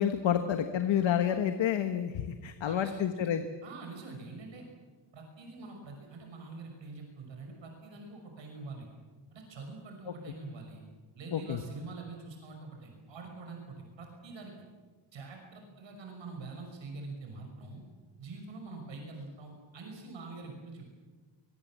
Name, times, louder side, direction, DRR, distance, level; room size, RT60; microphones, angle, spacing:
voice 1, 0.0-3.4 10.1-10.2 11.3-11.6, left 9 dB, 85° left, 8 dB, 1.5 m, -29 dB
voice 2, 2.6-3.3 3.6-4.6 5.1-8.9 9.3-10.8 11.1-14.5 15.1-17.8 18.2-21.0, right 3 dB, 75° right, 2 dB, 5.9 m, -45 dB
24.0 x 22.5 x 7.6 m, 1.3 s
wide cardioid pair, 170°, 45 cm